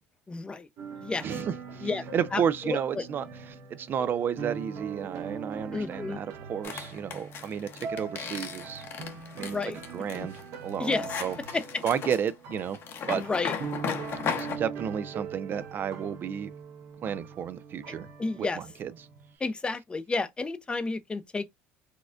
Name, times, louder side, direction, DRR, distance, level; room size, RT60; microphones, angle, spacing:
voice 1, 0.3-0.7 1.0-1.3 1.8-2.0 2.3-3.0 5.7-6.2 9.4-9.8 10.1-10.3 10.8-11.2 11.5-11.8 13.1-13.5 18.2-18.6 19.4-21.5, left 3 dB, 20° left, 0.5 m, -31 dB
sound 1, 0.8-19.3, right 5 dB, 60° right, 1.0 m, -42 dB
voice 2, 1.2-3.2 3.7-8.9 9.3-9.6 9.9-10.9 11.2-11.4 11.8-12.8 13.1-13.2 14.4-16.5 17.0-18.1 18.4-18.9, right 8 dB, 40° right, 0.3 m, -32 dB
sound 2, 6.6-14.6, left 7 dB, 45° left, 0.8 m, -36 dB
4.2 x 2.3 x 2.5 m
supercardioid pair, 110°, 5 cm